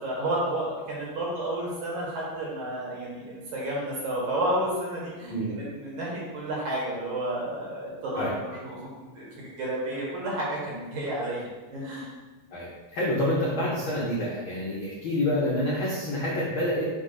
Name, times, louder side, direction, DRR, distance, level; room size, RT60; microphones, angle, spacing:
voice 1, 0.0-8.3 8.6-8.9 9.2-11.4 11.7-12.1, right 1 dB, 60° right, -5 dB, 3.0 m, -31 dB
voice 2, 12.5-16.8, left 1 dB, 70° left, -6 dB, 1.2 m, -27 dB
6.9 x 3.0 x 5.7 m, 1.2 s
omnidirectional pair, 3.9 m